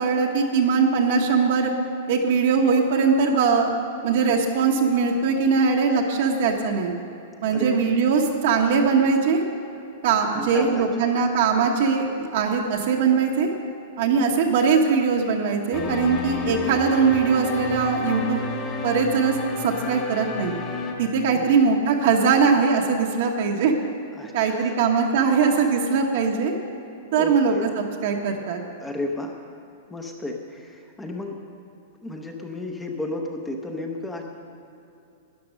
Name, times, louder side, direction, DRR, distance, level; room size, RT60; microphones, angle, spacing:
voice 1, 0.0-1.7 2.1-3.7 4.0-6.9 7.4-9.4 10.0-13.5 14.0-18.4 18.8-19.4 19.6-20.5 21.0-23.7 24.3-26.5 27.1-27.5 28.0-28.6, right 5 dB, 50° right, 1 dB, 1.1 m, -21 dB
voice 2, 7.5-7.8 10.3-10.9 14.3-14.5 21.3-21.6 24.2-24.8 25.6-25.7 27.0-27.6 28.8-29.4 29.9-31.4 32.0-34.2, left 2 dB, 5° left, 2 dB, 0.8 m, -33 dB
Dark Orchestral Piece, 15.7-20.9, left 3 dB, 25° left, 1.4 m, -31 dB
12.5 x 9.7 x 6.3 m, 2.7 s
supercardioid pair, 170°, 0 cm